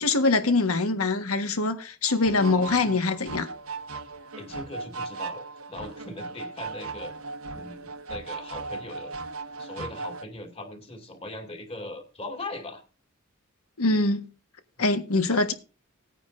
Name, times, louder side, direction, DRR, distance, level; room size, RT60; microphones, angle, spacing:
voice 1, 0.0-3.5 13.8-14.2 14.8-15.5, left 3 dB, 85° left, 1.5 m, -23 dB
sound 1, 2.1-10.3, right 3 dB, 75° right, 1.1 m, -38 dB
voice 2, 2.3-3.0 4.4-7.1 7.5-9.1 9.6-12.8 15.3-15.4, left 2 dB, 30° left, 2.4 m, -40 dB
19.0 x 9.2 x 2.6 m
head